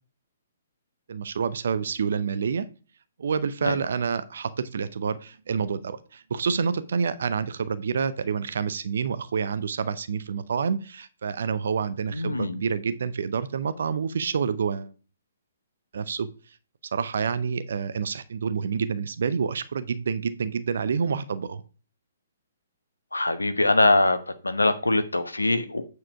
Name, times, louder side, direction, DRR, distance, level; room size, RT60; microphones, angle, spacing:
voice 1, 1.1-2.7 3.2-14.9 15.9-16.3 16.9-21.6, right 6 dB, 55° right, 0.7 m, -28 dB
voice 2, 12.1-12.6 23.1-24.2 24.4-25.8, left 2 dB, 80° left, 1.0 m, -22 dB
8.6 x 4.7 x 4.6 m
figure-of-eight pair, 125°, 0 cm